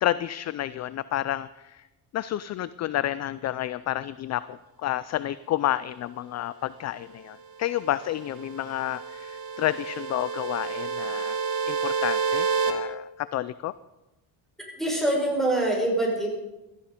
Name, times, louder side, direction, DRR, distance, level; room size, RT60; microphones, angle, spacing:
voice 1, 0.0-1.8 2.1-11.4 11.7-13.7, left 13 dB, 40° left, 16 dB, 0.4 m, -30 dB
sound 1, 7.8-12.7, right 5 dB, 85° right, 2.4 m, -29 dB
voice 2, 14.8-16.3, right 1 dB, ahead, -1 dB, 5.1 m, -24 dB
16.5 x 14.0 x 5.1 m, 1.0 s
cardioid pair, 130°, 41 cm